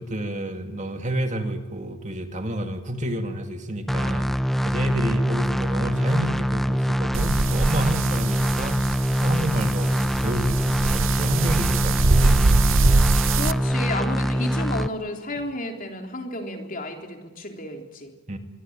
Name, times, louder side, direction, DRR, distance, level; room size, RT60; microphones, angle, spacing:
voice 1, 0.0-4.3 4.6-8.9 9.2-12.4 18.3-18.4, right 1 dB, 35° right, 6 dB, 2.2 m, -29 dB
sound 1, 3.9-14.9, equal, ahead, 0.7 m, -24 dB
sound 2, 7.1-13.5, right 3 dB, 75° right, 0.8 m, -23 dB
voice 2, 13.3-18.1, left 2 dB, 45° left, 3 dB, 3.8 m, -32 dB
25.0 x 22.5 x 9.0 m, 1.2 s
head